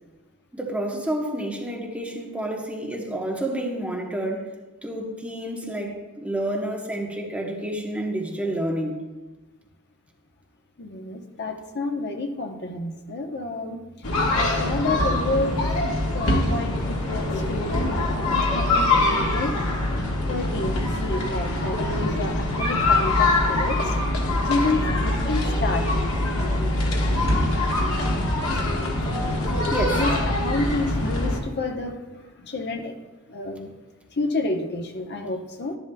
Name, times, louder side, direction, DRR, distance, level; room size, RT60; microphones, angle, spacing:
voice 1, 0.5-4.5 4.8-9.0 29.7-30.0, right 1 dB, 5° right, -1 dB, 1.0 m, -29 dB
voice 2, 10.8-13.8 14.3-15.6 16.1-19.5 20.3-23.9 24.3-25.9 29.9-32.9 33.3-33.7 34.2-35.8, left 2 dB, 50° left, 4 dB, 0.9 m, -29 dB
sound 1, 14.0-31.4, left 2 dB, 75° left, 1.5 m, -23 dB
12.0 x 11.0 x 2.3 m, 1.2 s
head